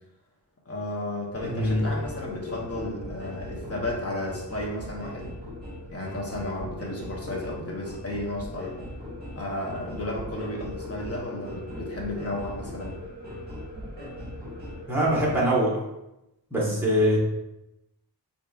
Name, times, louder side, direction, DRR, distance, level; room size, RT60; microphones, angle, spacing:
voice 1, 0.7-5.3 5.9-8.8 9.4-13.0 16.8-16.9, left 1 dB, 35° left, -1 dB, 0.7 m, -33 dB
sound 1, 1.3-15.4, left 1 dB, 25° right, 1.3 m, -39 dB
voice 2, 1.5-1.9 14.9-15.8 16.5-17.2, equal, 5° right, -6 dB, 1.1 m, -23 dB
4.6 x 2.6 x 2.3 m, 0.91 s
wide cardioid pair, 125°, 42 cm